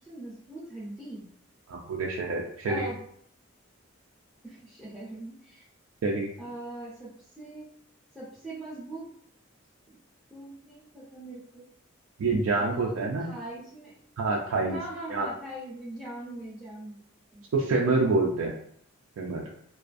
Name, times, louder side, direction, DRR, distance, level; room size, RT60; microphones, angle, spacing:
voice 1, 0.0-1.2 2.7-3.0 4.4-5.6 6.4-7.7 8.1-9.0 10.3-11.6 12.6-14.0 14.6-17.0 17.3-17.4, right 1 dB, 5° right, -10 dB, 0.6 m, -41 dB
voice 2, 1.7-2.9 6.0-6.3 12.2-13.3 14.2-14.8 15.1-15.3 17.5-18.5 19.2-19.4, right 3 dB, 80° right, -1 dB, 0.3 m, -26 dB
2.4 x 2.4 x 2.4 m, 0.65 s
head